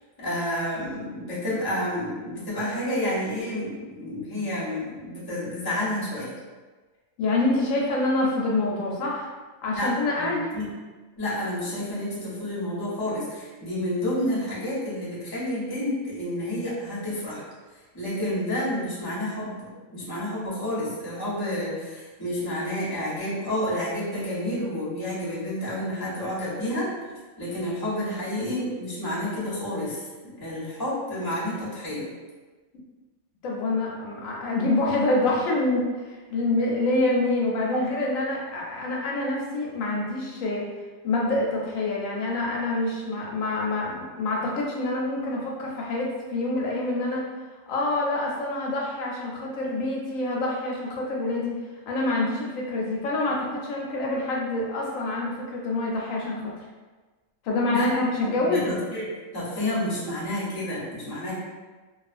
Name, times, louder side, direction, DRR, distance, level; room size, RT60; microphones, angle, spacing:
voice 1, 0.2-6.3 9.8-9.9 10.2-10.7 11.2-17.4 17.9-26.9 27.4-30.0 30.4-32.1 57.7-57.9 58.2-59.1 59.3-61.3, left 1 dB, 20° left, -9 dB, 0.8 m, -30 dB
voice 2, 7.2-9.3 9.6-10.5 33.4-40.7 41.0-47.3 47.7-51.5 51.9-56.5 57.4-58.7, left 2 dB, 85° left, -3 dB, 1.0 m, -26 dB
2.3 x 2.3 x 2.4 m, 1.3 s
omnidirectional pair, 1.4 m